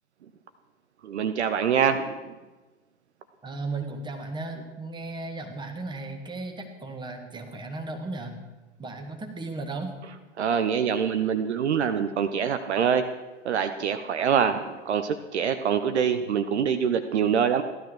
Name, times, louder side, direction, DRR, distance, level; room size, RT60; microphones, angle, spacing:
voice 1, 1.0-2.3 10.4-13.0 13.4-17.6, right 7 dB, 60° right, 9 dB, 1.0 m, -25 dB
voice 2, 3.4-8.4 8.8-10.0, right 3 dB, 10° right, 4 dB, 1.9 m, -35 dB
15.5 x 12.5 x 6.2 m, 1.2 s
figure-of-eight pair, 95°, 37 cm